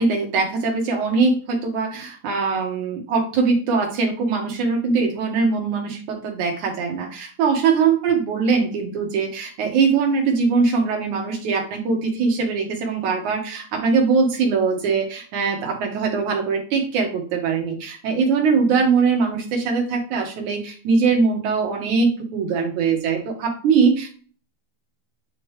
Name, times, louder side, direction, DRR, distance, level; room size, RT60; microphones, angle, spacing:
voice 1, 0.0-24.1, right 5 dB, 75° right, 2 dB, 2.9 m, -21 dB
9.4 x 3.2 x 3.2 m, 0.41 s
omnidirectional pair, 3.4 m